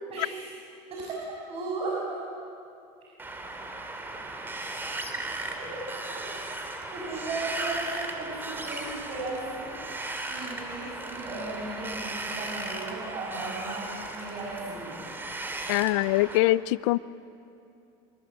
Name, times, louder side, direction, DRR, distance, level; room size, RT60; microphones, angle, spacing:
voice 1, 0.1-0.4 0.9-1.2 1.5-1.9 5.5-5.7 6.9-9.7 10.3-15.0, right 3 dB, 40° right, -5 dB, 7.2 m, -36 dB
Wind, 3.2-16.4, right 2 dB, 15° right, 2.8 m, -36 dB
voice 2, 15.7-17.0, left 18 dB, 80° left, 18 dB, 0.6 m, -23 dB
25.0 x 24.0 x 8.5 m, 2.7 s
supercardioid pair, 135°, 15 cm